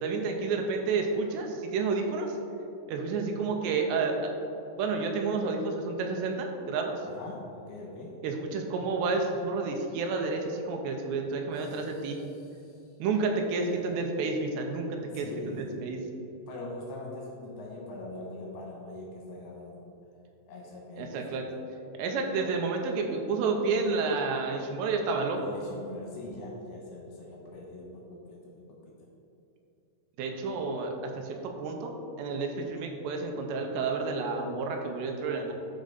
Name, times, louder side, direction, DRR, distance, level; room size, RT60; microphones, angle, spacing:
voice 1, 0.0-2.3 2.9-4.3 4.8-7.0 8.2-12.2 13.0-15.6 15.8-16.0 21.0-21.5 22.0-25.4 30.2-35.5, right 4 dB, 80° right, 3 dB, 2.6 m, -30 dB
voice 2, 7.0-8.2 11.5-12.9 13.2-14.0 15.1-15.8 16.5-19.9 20.5-21.6 25.3-29.1, left 2 dB, 70° left, -2 dB, 2.4 m, -43 dB
11.5 x 4.8 x 4.0 m, 2.8 s
omnidirectional pair, 5.5 m